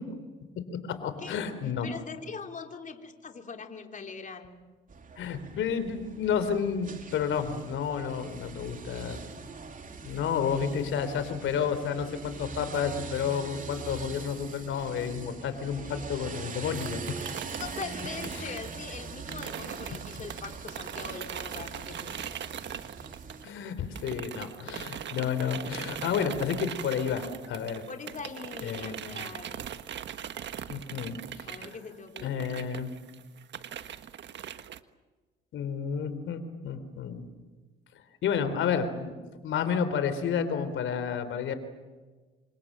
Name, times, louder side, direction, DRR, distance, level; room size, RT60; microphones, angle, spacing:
voice 1, 1.0-1.9 5.2-9.2 10.0-17.0 18.3-18.6 23.4-27.8 28.6-29.2 30.7-31.8 32.2-32.9 35.5-37.3 38.2-39.1 39.4-41.5, left 7 dB, 80° left, 11 dB, 3.9 m, -31 dB
voice 2, 1.8-4.6 15.8-16.2 17.6-22.4 27.8-29.7 31.5-32.5, left 5 dB, 40° left, 4 dB, 3.8 m, -42 dB
sound 1, 4.9-23.4, right 5 dB, 40° right, 3.0 m, -42 dB
sound 2, 16.7-23.7 23.9-34.8, right 9 dB, 65° right, 1.5 m, -40 dB
29.0 x 26.0 x 7.7 m, 1.3 s
cardioid pair, 90°, 20 cm